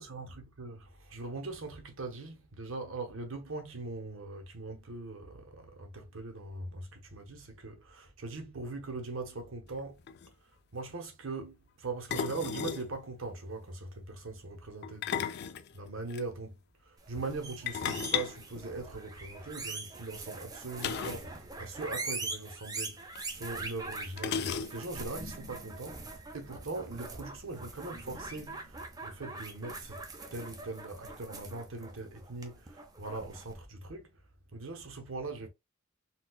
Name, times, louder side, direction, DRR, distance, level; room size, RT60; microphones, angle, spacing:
voice 1, 0.0-10.0 10.7-15.2 15.7-16.6 16.9-30.0 30.3-34.1 34.5-35.5, right 3 dB, 85° right, 1.0 m, -41 dB
sound 1, 9.8-9.9 10.1-10.3 12.1-12.9 14.8-16.2 17.7-19.3 20.8-21.3 21.6-21.7 22.0-22.1 23.2-23.3 24.2-25.0, left 7 dB, 55° left, 0.3 m, -35 dB
sound 2, 17.0-33.5, right 3 dB, 20° right, 0.6 m, -43 dB
4.2 x 2.3 x 2.2 m
head